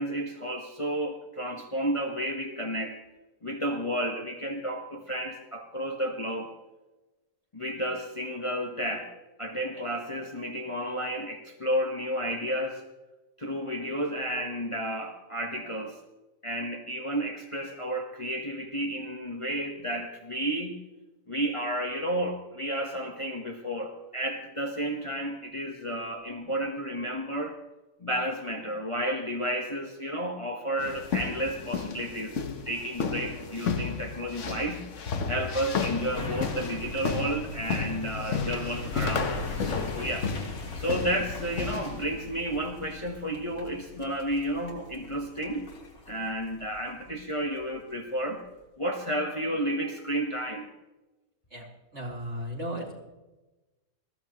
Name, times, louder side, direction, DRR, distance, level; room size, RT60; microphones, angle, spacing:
voice 1, 0.0-3.0 3.4-6.5 7.5-9.1 9.4-12.8 13.4-16.0 16.4-20.8 21.3-27.6 28.0-32.4 32.6-34.9 35.3-40.3 40.7-45.7 46.1-48.4 48.8-50.7, right 1 dB, 25° left, 2 dB, 1.2 m, -32 dB
sound 1, 30.8-42.0, left 5 dB, 55° left, 1.3 m, -33 dB
sound 2, 36.1-47.6 48.1-48.2, left 2 dB, 85° left, 2.7 m, -40 dB
voice 2, 51.9-52.9, equal, 50° right, -3 dB, 3.9 m, -35 dB
21.0 x 15.0 x 3.0 m, 1.1 s
omnidirectional pair, 1.5 m